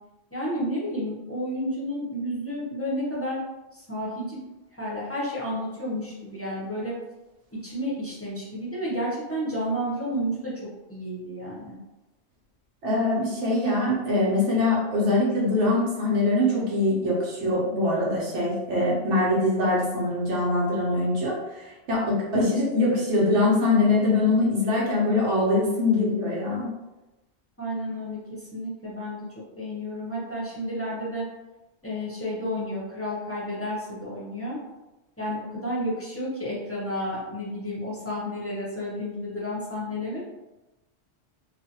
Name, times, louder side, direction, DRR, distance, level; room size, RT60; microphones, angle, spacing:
voice 1, 0.3-3.4 3.7-4.4 4.7-6.9 7.6-10.5 10.9-11.8 22.0-22.4 27.6-31.2 31.8-34.6 35.2-40.3, equal, 15° left, -7 dB, 0.6 m, -31 dB
voice 2, 12.8-26.7, left 2 dB, 80° right, -6 dB, 1.1 m, -23 dB
2.6 x 2.4 x 2.8 m, 1.0 s
omnidirectional pair, 1.2 m